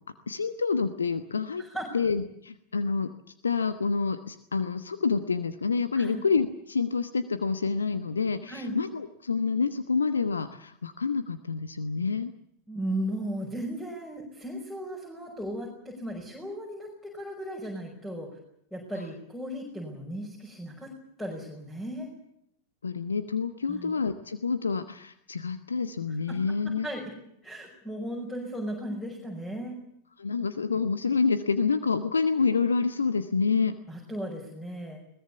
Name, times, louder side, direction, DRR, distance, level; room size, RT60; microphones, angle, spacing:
voice 1, 0.3-1.6 1.9-3.1 3.4-12.3 22.8-26.9 30.2-33.7, left 5 dB, 75° left, 11 dB, 1.2 m, -28 dB
voice 2, 1.6-1.9 5.9-6.2 8.5-8.8 12.7-18.3 18.7-20.9 21.2-22.1 23.7-23.9 26.1-27.1 27.4-29.8 33.9-35.0, equal, 10° left, 0 dB, 5.7 m, -36 dB
21.5 x 19.5 x 8.4 m, 0.74 s
figure-of-eight pair, 90°, 0 cm